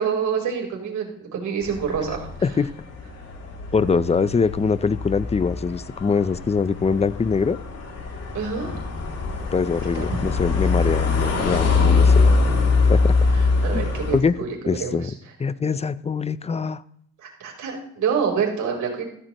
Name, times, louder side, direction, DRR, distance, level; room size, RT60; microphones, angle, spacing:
voice 1, 0.0-2.3 8.3-8.8 9.8-10.0 11.4-11.6 13.6-15.1 17.2-19.0, right 6 dB, 75° right, 1 dB, 4.0 m, -27 dB
sound 1, 1.6-14.2, left 4 dB, 55° left, 2.9 m, -23 dB
voice 2, 3.7-7.6 9.5-12.1 12.8-13.1 13.7-13.8 14.1-14.3 14.7-15.1 15.4-16.8, left 5 dB, 20° left, 16 dB, 0.6 m, -23 dB
14.5 x 14.5 x 3.1 m, 0.69 s
cardioid pair, 90°, 30 cm